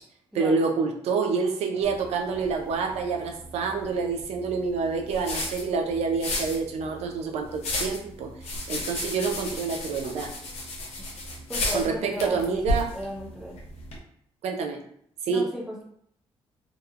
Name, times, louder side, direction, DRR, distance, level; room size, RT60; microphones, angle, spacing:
voice 1, 0.3-10.3 11.7-12.9 14.4-14.8 15.2-15.4, right 5 dB, 85° right, 3 dB, 0.4 m, -27 dB
sound 1, 1.8-14.0, left 1 dB, 80° left, 0.7 m, -34 dB
voice 2, 11.5-12.7 12.9-13.6 15.3-15.8, right 1 dB, ahead, -4 dB, 0.5 m, -34 dB
2.9 x 2.1 x 2.4 m, 0.68 s
cardioid pair, 135°, 11 cm